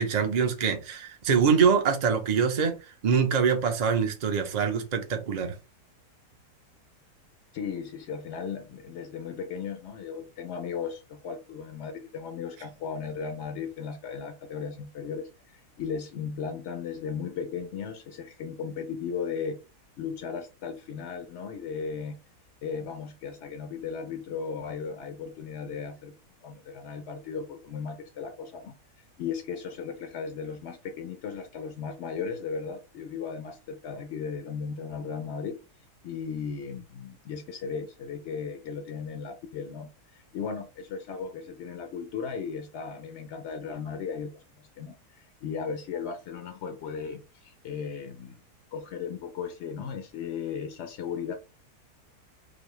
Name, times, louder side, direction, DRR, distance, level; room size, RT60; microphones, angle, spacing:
voice 1, 0.0-2.7 3.0-5.5, right 6 dB, 55° right, 0.4 m, -24 dB
voice 2, 7.5-19.6 20.0-22.2 22.6-26.1 26.4-35.6 36.0-48.4 48.7-51.3, left 6 dB, 65° left, 0.7 m, -36 dB
4.2 x 2.7 x 3.1 m
omnidirectional pair, 1.7 m